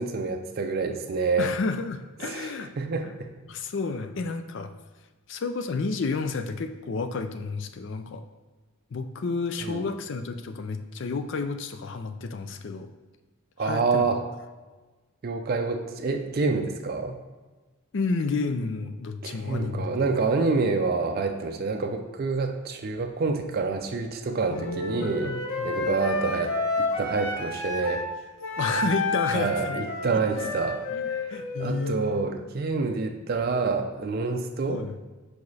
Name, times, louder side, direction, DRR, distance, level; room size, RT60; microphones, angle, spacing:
voice 1, 0.0-1.5 2.2-3.3 9.6-9.9 13.6-14.2 15.2-17.2 19.2-25.4 25.6-28.0 29.3-34.8, right 4 dB, 45° right, 4 dB, 0.4 m, -27 dB
voice 2, 1.4-2.7 3.5-4.7 5.3-8.2 8.9-12.9 13.6-14.1 17.9-19.9 24.5-25.7 28.6-29.8 30.1-30.5 30.9-31.0 31.3-32.0 34.7-34.9, left 4 dB, 55° left, 8 dB, 0.4 m, -31 dB
Wind instrument woodwind instrument, 24.5-28.1 28.4-32.2, left 2 dB, 70° left, 0.9 m, -30 dB
4.9 x 4.8 x 4.1 m, 1.2 s
head